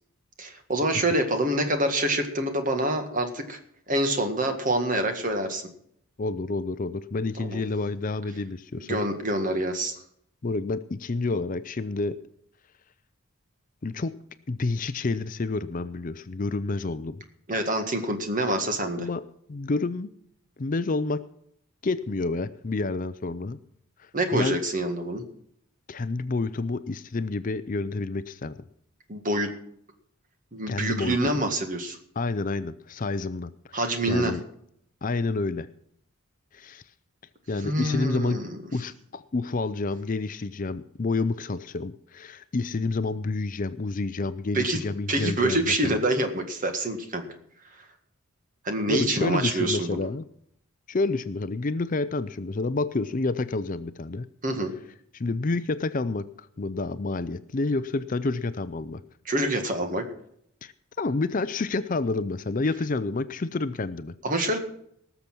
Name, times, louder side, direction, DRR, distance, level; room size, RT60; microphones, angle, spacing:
voice 1, 0.4-3.6 3.9-5.6 7.4-7.6 8.9-9.9 17.5-19.1 24.1-25.2 29.1-29.5 30.5-32.0 33.7-34.3 37.6-38.4 44.5-44.8 45.1-47.3 48.6-50.1 54.4-54.7 59.2-60.0 64.2-64.6, right 1 dB, 35° right, 6 dB, 1.8 m, -26 dB
voice 2, 6.2-9.0 10.4-12.2 13.8-14.1 14.5-17.2 19.0-19.2 19.5-20.1 20.6-21.2 21.8-23.6 24.0-24.6 25.9-28.5 30.7-31.3 32.2-34.4 35.0-35.7 36.5-36.8 37.5-38.4 38.7-46.0 48.9-50.2 50.9-54.3 55.1-59.0 60.6-64.2, left 3 dB, 40° left, 13 dB, 0.5 m, -29 dB
18.5 x 7.0 x 6.1 m, 0.69 s
head